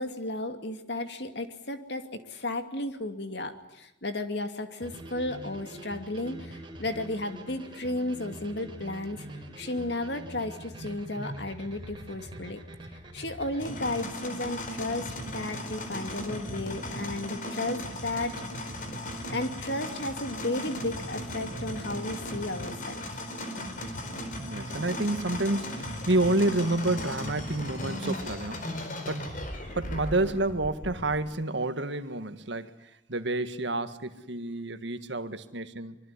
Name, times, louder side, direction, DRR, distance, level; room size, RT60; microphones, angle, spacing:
voice 1, 0.0-9.3 9.6-12.6 13.1-18.3 19.3-23.2, left 2 dB, 60° left, 7 dB, 2.5 m, -34 dB
sound 1, 4.8-13.7, right 1 dB, 25° right, 5.2 m, -44 dB
sound 2, 13.6-31.2, left 1 dB, 45° left, 4.4 m, -37 dB
voice 2, 24.4-29.3 29.7-36.0, right 2 dB, 65° right, 10 dB, 1.7 m, -29 dB
25.0 x 24.0 x 9.8 m, 0.86 s
head